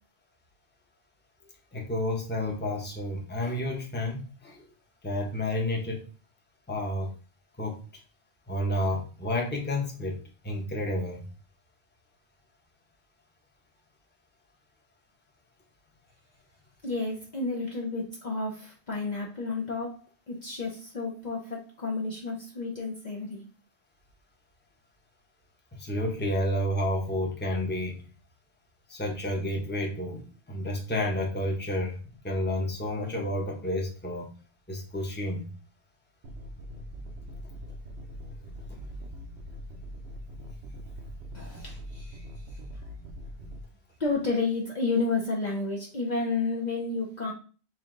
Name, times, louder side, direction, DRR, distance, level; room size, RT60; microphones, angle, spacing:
voice 1, 1.7-4.7 5.0-6.0 6.7-7.1 7.6-7.8 8.5-10.2 10.4-11.3 25.7-28.0 28.9-32.0 32.2-34.3 34.7-35.5 40.9-41.0, left 1 dB, 10° left, 0 dB, 0.8 m, -30 dB
voice 2, 16.8-20.0 20.3-23.4 41.3-42.6 44.0-47.3, left 3 dB, 45° left, -2 dB, 0.8 m, -31 dB
sound 1, 36.2-43.6, equal, 65° right, 1.0 m, -42 dB
4.4 x 2.8 x 3.8 m, 0.38 s
omnidirectional pair, 1.2 m